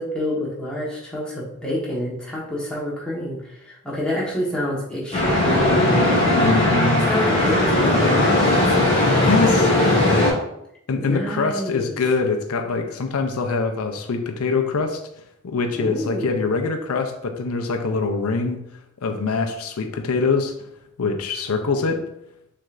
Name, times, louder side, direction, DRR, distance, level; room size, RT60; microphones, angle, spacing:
voice 1, 0.0-6.1 6.9-8.9 11.0-12.0 15.7-16.4, equal, 5° left, -6 dB, 1.3 m, -28 dB
sound 1, 5.1-10.3, left 1 dB, 25° left, 1.6 m, -18 dB
voice 2, 6.4-7.1 9.2-9.7 10.9-15.0 15.4-18.6 19.0-20.5 21.0-22.0, left 4 dB, 90° left, 5 dB, 0.5 m, -23 dB
6.2 x 3.4 x 2.5 m, 0.78 s
head